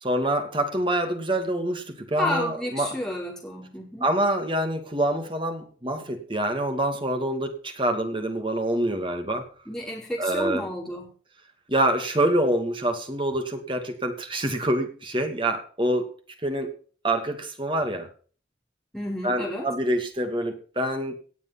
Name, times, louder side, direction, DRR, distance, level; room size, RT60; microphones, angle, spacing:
voice 1, 0.0-3.0 4.0-9.5 10.2-10.6 11.7-16.1 16.4-16.7 17.0-18.1 19.2-21.2, right 1 dB, 30° right, 5 dB, 2.4 m, -26 dB
voice 2, 2.2-4.1 9.7-11.0 18.9-19.7, left 1 dB, 5° left, -3 dB, 4.9 m, -31 dB
18.0 x 7.3 x 5.9 m, 0.42 s
head